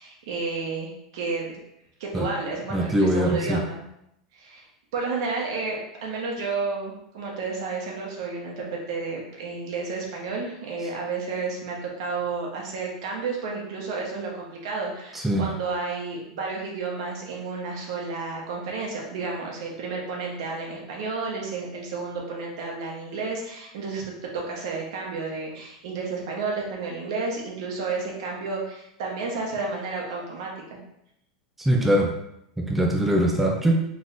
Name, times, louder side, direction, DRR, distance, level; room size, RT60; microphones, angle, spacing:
voice 1, 0.0-1.5 2.0-3.8 4.3-4.7 4.9-30.8, right 4 dB, 70° right, -1 dB, 1.3 m, -31 dB
voice 2, 2.7-3.6 15.1-15.5 31.6-32.1 32.6-33.8, right 1 dB, 5° right, 0 dB, 0.7 m, -22 dB
3.4 x 3.1 x 4.0 m, 0.80 s
hypercardioid pair, 105°, 3 cm